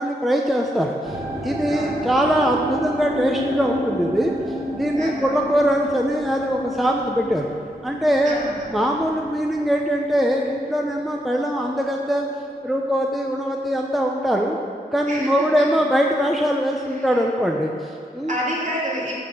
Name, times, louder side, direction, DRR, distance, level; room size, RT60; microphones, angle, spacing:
voice 1, 0.0-4.3 4.7-7.5 7.8-8.4 8.7-12.2 12.6-14.6 14.9-18.3, equal, ahead, 0 dB, 0.6 m, -22 dB
sound 1, 1.0-12.2 12.5-13.1 13.7-13.8, right 1 dB, 15° right, 1.8 m, -32 dB
voice 2, 1.7-2.1 5.0-5.3 8.2-8.7 15.1-15.7 16.9-17.2 18.3-19.2, equal, 45° right, -6 dB, 2.8 m, -29 dB
12.5 x 4.2 x 7.6 m, 2.5 s
wide cardioid pair, 110°, 17 cm